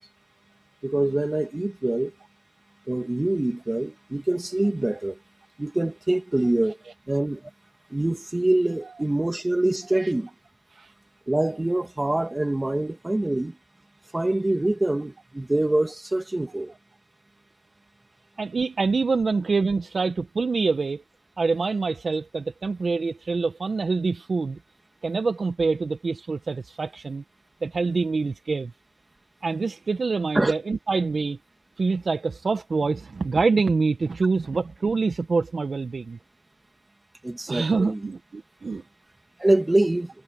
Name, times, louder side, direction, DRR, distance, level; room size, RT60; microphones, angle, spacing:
voice 1, 0.8-2.1 2.9-5.2 5.6-6.8 7.1-7.5 7.9-10.3 11.3-13.6 14.1-16.7 30.3-30.5 37.2-38.0 39.4-40.1, right 1 dB, 10° right, 2.8 m, -25 dB
voice 2, 18.4-21.0 21.4-24.6 25.0-27.2 27.6-28.7 29.4-31.4 31.8-36.2 37.5-38.8, right 4 dB, 30° right, 1.5 m, -25 dB
cardioid pair, 90°, 0 cm